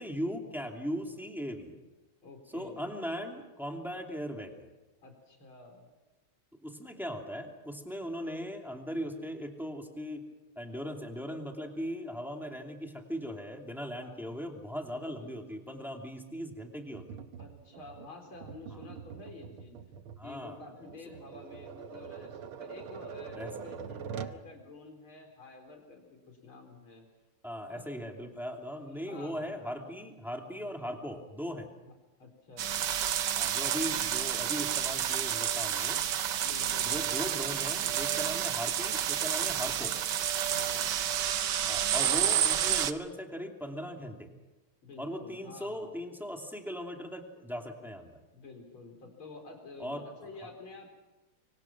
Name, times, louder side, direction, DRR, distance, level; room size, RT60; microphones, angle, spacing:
voice 1, 0.0-1.7 2.5-4.7 6.6-10.2 10.6-17.2 18.7-18.8 20.2-20.6 23.4-23.5 27.4-31.7 33.4-36.0 36.9-39.9 41.7-44.3 45.0-48.1 49.8-50.0, equal, ahead, 2 dB, 2.6 m, -38 dB
voice 2, 2.2-2.9 5.0-5.9 14.0-14.5 14.9-15.4 17.4-19.8 20.2-27.1 27.7-27.8 29.0-29.5 32.2-32.8 36.4-37.2 40.4-41.2 44.8-46.0 48.3-50.9, left 3 dB, 70° left, 3 dB, 5.1 m, -49 dB
Tap, 16.9-24.4, right 7 dB, 80° right, 1.9 m, -44 dB
sound 1, 32.6-42.9, right 10 dB, 60° right, 1.4 m, -30 dB
25.5 x 25.0 x 6.0 m, 1.1 s
omnidirectional pair, 2.3 m